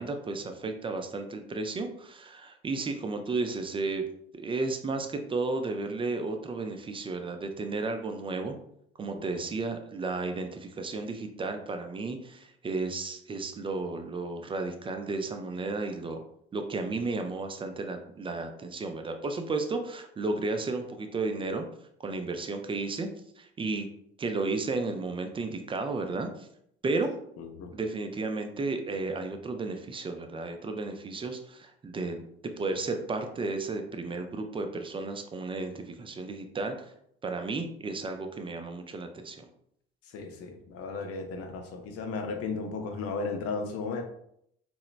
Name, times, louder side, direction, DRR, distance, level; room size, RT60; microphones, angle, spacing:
voice 1, 0.0-4.0 4.3-8.6 9.0-16.2 16.5-21.6 22.0-23.1 23.4-23.9 24.2-26.5 26.8-27.1 27.7-32.2 32.6-36.9 37.2-39.5, right 3 dB, 20° right, 5 dB, 0.3 m, -33 dB
voice 2, 27.4-27.7 40.1-44.0, left 4 dB, 50° left, 5 dB, 0.6 m, -35 dB
2.8 x 2.1 x 2.4 m, 0.71 s
figure-of-eight pair, 55°, 32 cm